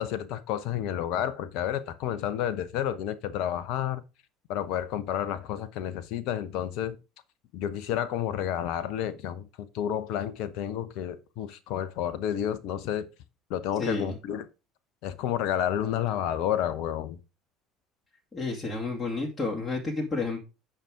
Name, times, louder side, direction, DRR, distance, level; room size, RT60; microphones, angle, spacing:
voice 1, 0.0-4.0 4.5-7.0 7.5-13.1 13.5-14.4 15.0-17.2, left 10 dB, 55° left, 0.9 m, -30 dB
voice 2, 13.8-14.2 18.3-20.4, left 3 dB, 20° left, 2.6 m, -31 dB
9.1 x 5.9 x 4.9 m
figure-of-eight pair, 60°, 0 cm